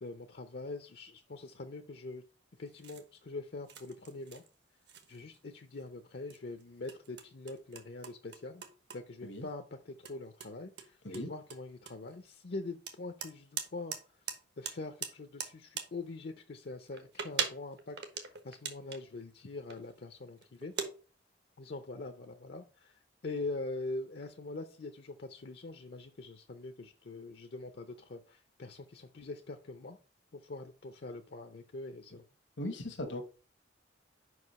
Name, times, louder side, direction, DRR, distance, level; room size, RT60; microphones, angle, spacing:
voice 1, 0.0-2.2 2.6-4.4 5.1-8.6 8.9-14.0 14.3-20.7 21.6-30.0 30.3-32.2, left 2 dB, 55° left, 7 dB, 0.6 m, -43 dB
sound 1, 2.6-3.1 3.7-4.5 4.9-5.5 5.8-5.9 6.3-9.0 9.3-9.5 10.0-10.1 10.4-12.2 12.9-14.0 14.3-14.4 14.7-15.8 16.8-19.1 19.7-20.0 20.4-20.9, right 7 dB, 60° right, 1.1 m, -40 dB
voice 2, 32.6-33.3, left 1 dB, 75° left, 5 dB, 1.2 m, -38 dB
5.3 x 4.8 x 5.3 m, 0.35 s
head